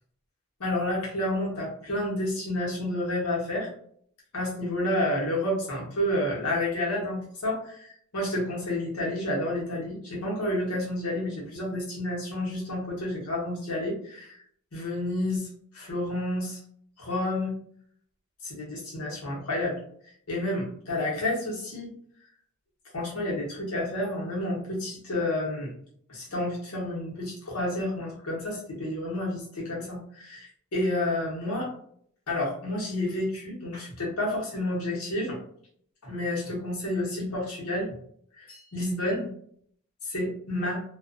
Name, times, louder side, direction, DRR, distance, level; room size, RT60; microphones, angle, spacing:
voice 1, 0.6-3.7 4.3-14.4 14.7-15.5 15.7-16.6 17.0-17.5 18.4-19.8 20.3-21.9 22.9-25.7 26.1-31.7 32.3-35.4 36.0-37.9 38.4-39.3 40.1-40.8, left 1 dB, 85° left, -3 dB, 1.0 m, -30 dB
2.3 x 2.3 x 2.4 m, 0.63 s
head